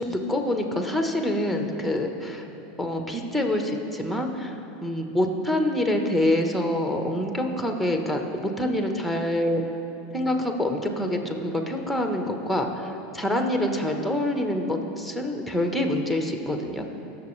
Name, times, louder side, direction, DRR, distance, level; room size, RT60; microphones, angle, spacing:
voice 1, 0.0-2.4 2.8-8.2 8.6-9.6 10.1-16.8, left 1 dB, ahead, 3 dB, 1.3 m, -26 dB
18.5 x 7.0 x 3.3 m, 2.9 s
hypercardioid pair, 100°, 0 cm